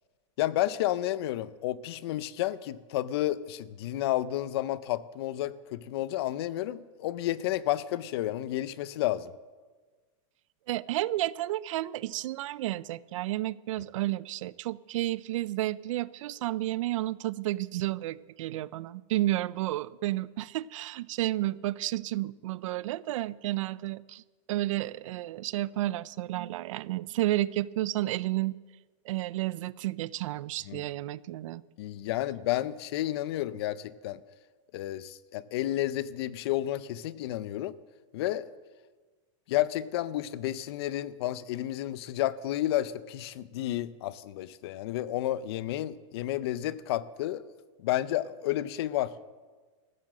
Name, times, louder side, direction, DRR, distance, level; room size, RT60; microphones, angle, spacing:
voice 1, 0.4-9.3 30.7-30.8 31.8-34.2 34.7-37.7 38.1-38.5 39.5-47.4 47.8-49.1, left 14 dB, 50° left, 18 dB, 0.5 m, -31 dB
voice 2, 10.7-24.2 24.5-28.6 29.1-31.6, right 16 dB, 75° right, 21 dB, 0.4 m, -31 dB
14.5 x 7.5 x 7.4 m, 1.4 s
supercardioid pair, 180°, 17 cm